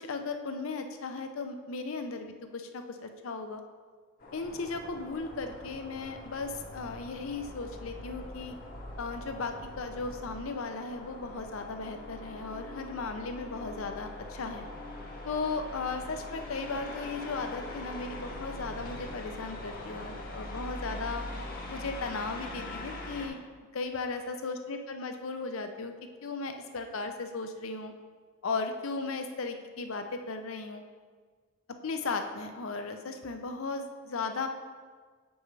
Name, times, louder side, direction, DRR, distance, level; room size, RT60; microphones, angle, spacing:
voice 1, 0.0-3.6 4.3-8.5 9.0-14.7 15.2-21.2 21.7-23.4 23.7-25.9 26.2-27.9 28.4-30.8 31.8-34.5, left 4 dB, 80° left, 6 dB, 0.6 m, -36 dB
sound 1, 4.2-23.3, left 1 dB, 45° left, 0.8 m, -42 dB
7.0 x 5.3 x 3.3 m, 1.5 s
head